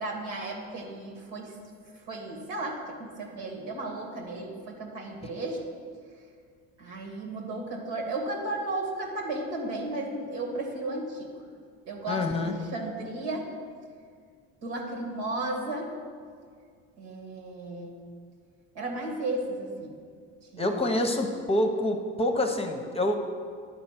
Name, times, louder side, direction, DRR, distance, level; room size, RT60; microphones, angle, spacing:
voice 1, 0.0-1.6 2.1-5.7 6.8-11.3 11.9-13.5 14.6-15.9 17.0-18.0 18.7-20.0 20.5-20.7, right 2 dB, 80° right, 0 dB, 1.9 m, -34 dB
voice 2, 12.1-12.5 20.6-23.2, left 1 dB, 20° left, 4 dB, 0.8 m, -26 dB
10.5 x 4.3 x 5.8 m, 2.1 s
supercardioid pair, 95°, 33 cm